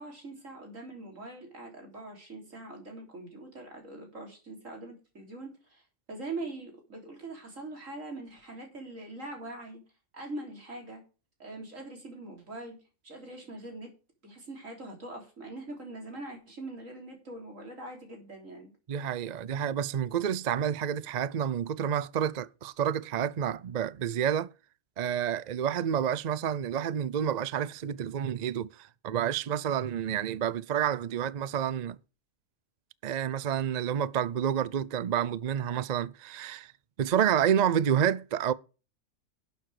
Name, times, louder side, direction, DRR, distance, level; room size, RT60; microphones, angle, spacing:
voice 1, 0.0-5.8 6.1-9.8 10.1-11.0 11.4-12.8 13.0-13.9 14.2-18.7, right 2 dB, 75° right, 4.1 m, -42 dB
voice 2, 18.9-24.5 25.0-32.0 33.0-36.7 37.0-38.5, right 9 dB, 50° right, 0.5 m, -29 dB
12.0 x 7.2 x 4.8 m
omnidirectional pair, 1.3 m